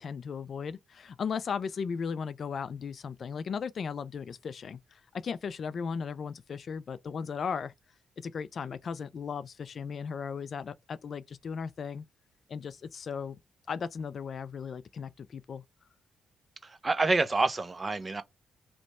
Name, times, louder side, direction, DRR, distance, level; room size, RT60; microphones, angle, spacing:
voice 1, 0.0-7.7 8.2-12.0 12.5-13.4 13.7-15.6, left 6 dB, 55° left, 0.3 m, -36 dB
voice 2, 16.6-18.2, right 3 dB, 30° right, 0.6 m, -27 dB
2.9 x 2.2 x 4.1 m
cardioid pair, 80°, 0 cm